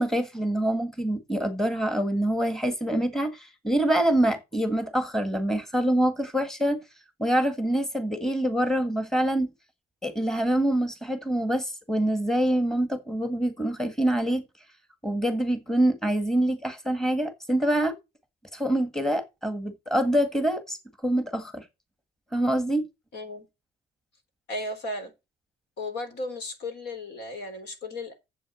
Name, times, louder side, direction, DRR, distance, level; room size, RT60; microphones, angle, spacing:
voice 1, 0.0-6.8 7.2-9.5 10.0-14.4 15.0-17.9 18.5-20.8 21.0-21.6 22.3-22.8, right 1 dB, 5° left, 1.7 m, -25 dB
voice 2, 23.1-23.4 24.5-25.1 25.8-28.1, left 2 dB, 75° left, 3.6 m, -35 dB
7.7 x 7.4 x 6.2 m
cardioid pair, 130°, 17 cm